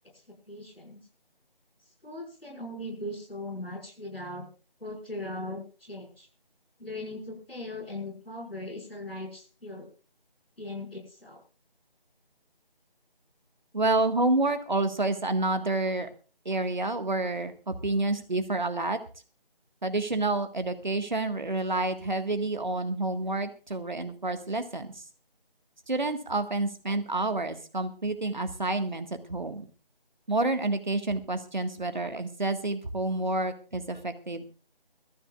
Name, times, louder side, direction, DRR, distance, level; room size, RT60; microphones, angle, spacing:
voice 1, 0.5-1.0 2.0-4.5 4.8-6.3 6.8-9.9 10.6-11.4, left 1 dB, 80° left, 2 dB, 5.9 m, -39 dB
voice 2, 13.7-16.1 16.5-19.0 19.8-24.9 25.9-29.7 30.3-34.4, right 2 dB, 50° right, 8 dB, 1.7 m, -29 dB
22.5 x 14.0 x 2.4 m, 0.35 s
figure-of-eight pair, 165°, 29 cm